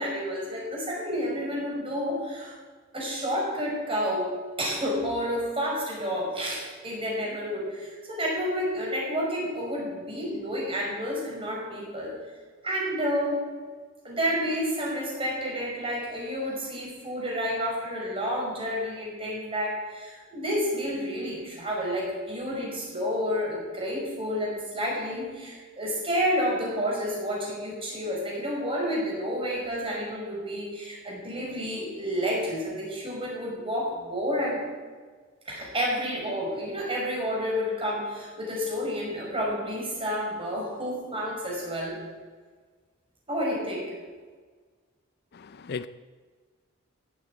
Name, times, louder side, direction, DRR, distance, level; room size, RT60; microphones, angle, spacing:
voice 1, 0.0-2.5 2.9-4.3 4.6-12.2 12.6-13.5 14.0-34.6 35.5-42.0 43.3-43.9, equal, 25° right, -3 dB, 5.5 m, -30 dB
voice 2, 45.3-45.9, left 5 dB, 50° left, 14 dB, 0.5 m, -36 dB
15.5 x 8.8 x 8.4 m, 1.5 s
head